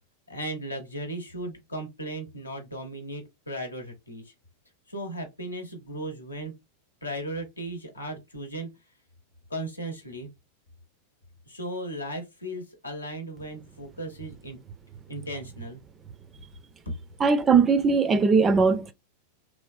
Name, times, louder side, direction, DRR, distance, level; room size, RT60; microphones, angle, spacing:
voice 1, 0.3-4.2 4.9-6.5 7.0-8.7 9.5-10.3 11.5-14.6 15.1-15.8, right 1 dB, 80° left, 0.8 m, -36 dB
voice 2, 17.2-18.9, right 5 dB, 20° right, 0.4 m, -20 dB
3.2 x 2.2 x 2.5 m
figure-of-eight pair, 90°, 0 cm